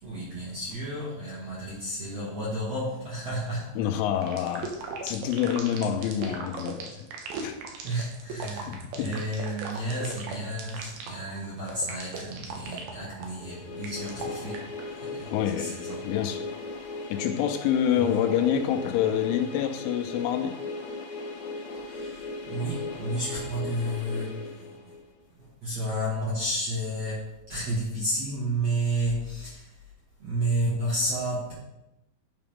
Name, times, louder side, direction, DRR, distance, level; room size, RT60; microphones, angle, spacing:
voice 1, 0.0-3.7 7.8-14.6 15.0-15.3 15.6-16.1 18.0-18.2 21.9-24.7 25.4-29.7 30.2-31.5, right 1 dB, 50° right, -8 dB, 2.0 m, -31 dB
voice 2, 3.8-4.7 5.0-7.0 7.4-7.6 8.7-9.2 15.3-15.8 16.0-16.5 17.1-20.6, left 9 dB, 85° left, 6 dB, 2.9 m, -27 dB
sound 1, 4.2-14.8, right 5 dB, 70° right, 2.4 m, -38 dB
sound 2, 13.3-25.2, left 3 dB, 65° left, 2.2 m, -37 dB
11.0 x 4.9 x 3.6 m, 0.90 s
omnidirectional pair, 5.6 m